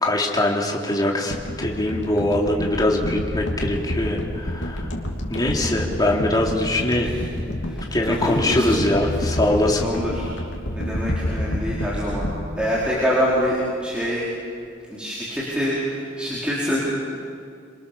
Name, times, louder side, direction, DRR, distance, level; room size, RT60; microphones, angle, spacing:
voice 1, 0.0-4.9 5.3-7.2 7.9-9.9, left 1 dB, 20° left, -1 dB, 3.6 m, -22 dB
sound 1, 1.3-13.6 13.9-14.1, left 1 dB, 70° left, 3.3 m, -29 dB
voice 2, 7.6-8.8 9.8-10.3 10.7-12.3 12.6-14.3 14.9-16.8, equal, 5° right, -8 dB, 4.8 m, -25 dB
28.5 x 26.5 x 7.1 m, 2.3 s
head